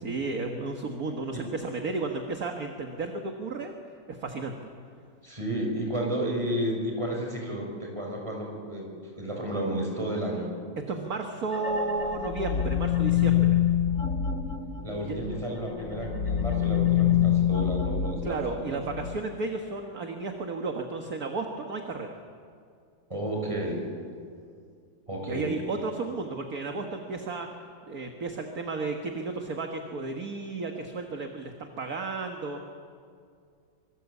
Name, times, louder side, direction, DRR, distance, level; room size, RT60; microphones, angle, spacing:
voice 1, 0.0-3.7 4.1-4.6 10.9-13.6 15.1-15.2 18.2-22.2 25.3-27.5 27.8-32.6, right 3 dB, 50° right, 4 dB, 2.0 m, -33 dB
voice 2, 5.2-8.9 9.2-10.5 14.8-18.8 23.1-23.9 25.1-25.6, right 1 dB, 15° right, 0 dB, 6.2 m, -32 dB
sound 1, 11.5-15.4 15.8-19.2, left 10 dB, 45° left, 1.4 m, -26 dB
26.5 x 24.0 x 8.3 m, 2.3 s
omnidirectional pair, 2.1 m